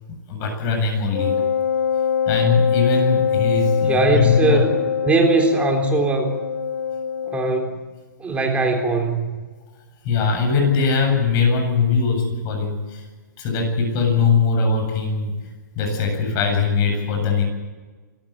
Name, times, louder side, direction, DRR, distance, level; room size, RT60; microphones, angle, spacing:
voice 1, 0.1-1.3 2.3-4.6 10.0-13.0 13.4-15.3 15.7-17.4, left 5 dB, 35° left, 3 dB, 8.0 m, -21 dB
Wind instrument woodwind instrument, 1.1-7.8, left 7 dB, 85° left, 3.3 m, -23 dB
voice 2, 3.9-4.8 5.0-6.3 7.3-7.8 8.2-9.3, right 3 dB, 10° right, 2 dB, 3.7 m, -20 dB
26.0 x 14.5 x 8.9 m, 1.4 s
hypercardioid pair, 135°, 10 cm